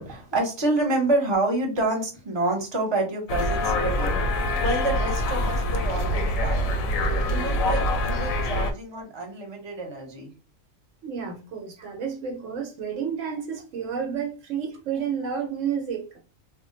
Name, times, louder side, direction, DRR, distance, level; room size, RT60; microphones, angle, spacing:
voice 1, 0.0-4.2 4.6-6.8 7.2-10.3 11.8-11.9, right 2 dB, 25° right, 0.8 m, -28 dB
sound 1, 3.3-8.7, left 1 dB, 85° left, 1.0 m, -25 dB
voice 2, 11.0-16.0, right 7 dB, 70° right, 1.0 m, -30 dB
2.5 x 2.1 x 3.7 m
omnidirectional pair, 1.4 m